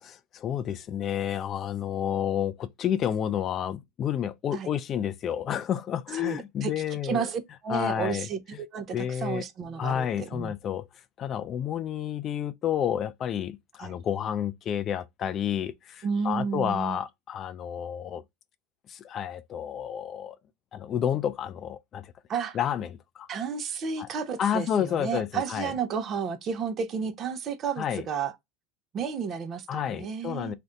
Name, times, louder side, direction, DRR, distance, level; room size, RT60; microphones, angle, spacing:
voice 1, 0.0-7.3 7.7-8.3 8.9-9.4 9.8-10.9 11.2-18.2 18.9-20.4 20.7-22.1 22.5-23.3 24.0-24.1 24.4-25.7 27.8-28.0 29.7-30.5, left 9 dB, 35° left, 0.3 m, -30 dB
voice 2, 6.1-10.5 13.8-14.0 16.0-17.0 22.3-22.6 23.3-28.3 28.9-30.5, right 6 dB, 35° right, 0.6 m, -32 dB
2.6 x 2.2 x 3.7 m
supercardioid pair, 115°, 0 cm